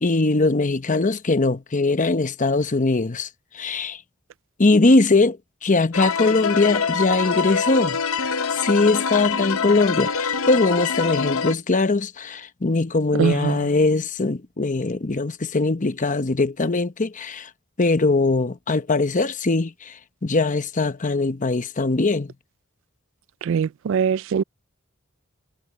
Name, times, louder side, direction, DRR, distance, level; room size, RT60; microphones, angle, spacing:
voice 1, 0.0-3.3 3.5-4.0 4.6-8.0 8.5-17.5 17.8-22.3, left 3 dB, 40° left, 0.9 m, -21 dB
sound 1, 5.9-11.5, left 5 dB, 85° left, 0.8 m, -25 dB
voice 2, 13.2-13.6 23.5-24.4, right 7 dB, 65° right, 0.3 m, -22 dB
head